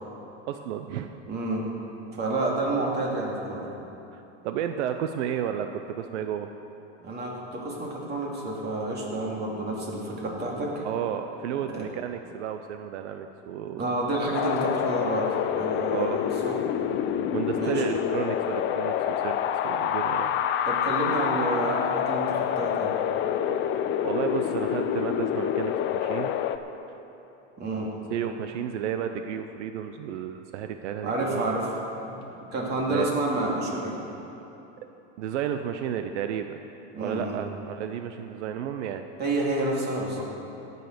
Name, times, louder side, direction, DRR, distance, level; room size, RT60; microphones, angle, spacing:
voice 1, 0.5-1.1 4.1-6.5 10.8-14.0 15.9-16.3 17.3-19.4 19.6-20.4 24.0-26.3 28.1-31.5 32.9-33.1 35.2-36.6 37.0-39.0, right 9 dB, 80° right, 7 dB, 0.8 m, -32 dB
voice 2, 1.3-1.7 2.1-3.7 7.0-10.8 11.7-11.8 13.6-16.5 17.5-17.8 20.7-22.9 27.6-27.9 31.0-31.7 32.0-32.2 32.5-34.0 36.9-37.4 39.2-40.2, right 2 dB, 30° right, -2 dB, 2.7 m, -29 dB
Wind, 14.3-26.6, left 9 dB, 35° left, 0.5 m, -27 dB
17.5 x 6.8 x 6.7 m, 3.0 s
supercardioid pair, 140°, 35 cm